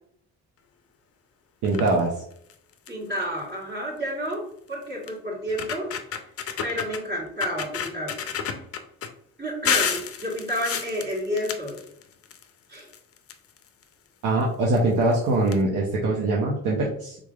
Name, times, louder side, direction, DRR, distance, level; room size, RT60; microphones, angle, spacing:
sound 1, 1.6-2.0 2.5-2.6 2.9-3.1 4.3-4.4 5.1-5.2 5.5-7.0 7.4-9.1 9.6-12.4 12.7-13.8 14.7-14.8 15.1-15.2 15.5-15.6, left 7 dB, 50° left, 0.5 m, -30 dB
voice 1, 1.6-2.1 14.2-17.2, right 2 dB, 85° right, -3 dB, 0.8 m, -22 dB
voice 2, 2.9-4.4 4.7-5.9 6.6-8.2 9.4-11.8 12.7-12.9, equal, 35° right, -5 dB, 1.4 m, -30 dB
3.8 x 3.1 x 2.3 m, 0.68 s
cardioid pair, 90°, 30 cm